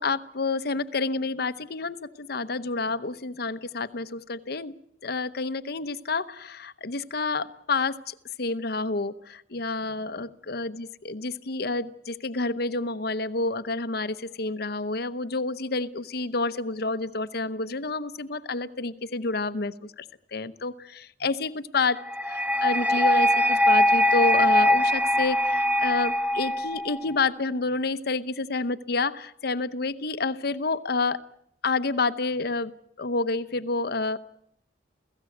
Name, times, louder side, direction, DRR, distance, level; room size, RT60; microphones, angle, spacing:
voice 1, 0.0-4.7 5.0-20.0 20.3-31.2 31.6-34.2, left 3 dB, 60° left, 13 dB, 0.9 m, -29 dB
sound 1, 22.1-27.1, left 1 dB, 10° right, 0.9 m, -22 dB
29.0 x 16.5 x 7.9 m, 0.73 s
head